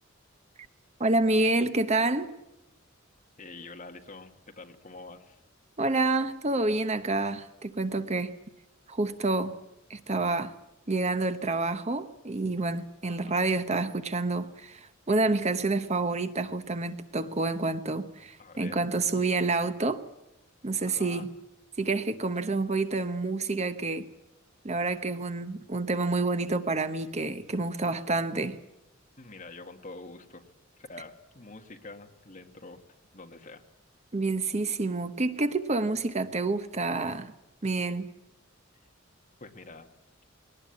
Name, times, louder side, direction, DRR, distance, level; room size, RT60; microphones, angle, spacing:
voice 1, 1.0-2.3 5.8-8.3 8.9-9.6 9.9-10.5 10.9-20.0 20.6-21.3 21.8-24.1 24.6-28.6 34.1-37.3 37.6-38.1, right 3 dB, 35° right, 0.9 m, -28 dB
voice 2, 3.4-5.4 13.1-13.4 18.4-18.8 20.8-21.3 29.2-30.5 30.8-32.8 33.1-33.6 39.4-39.9, left 3 dB, 40° left, 2.0 m, -46 dB
21.0 x 18.5 x 8.5 m
head